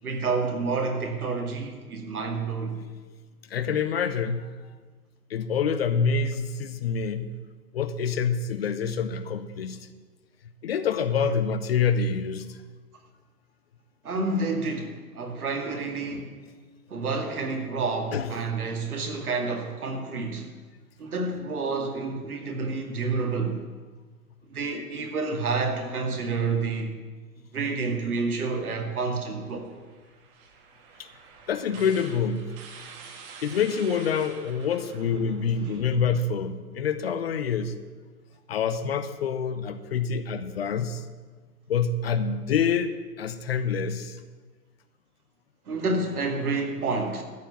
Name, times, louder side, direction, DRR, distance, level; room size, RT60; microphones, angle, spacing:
voice 1, 0.0-2.8 14.0-16.4 16.9-20.5 21.0-23.6 24.5-26.9 27.5-29.7 35.0-35.8 45.7-47.2, right 3 dB, 70° right, 2.2 m, -29 dB
voice 2, 3.5-4.5 5.3-7.3 7.7-9.9 10.6-12.6 18.1-18.4 31.0-31.1 31.5-32.5 33.4-37.8 38.5-41.0 41.7-44.2, left 6 dB, 40° left, 0.6 m, -26 dB
sound 1, 29.5-36.0, right 5 dB, 35° right, 1.5 m, -48 dB
13.5 x 4.6 x 8.8 m
figure-of-eight pair, 125°, 46 cm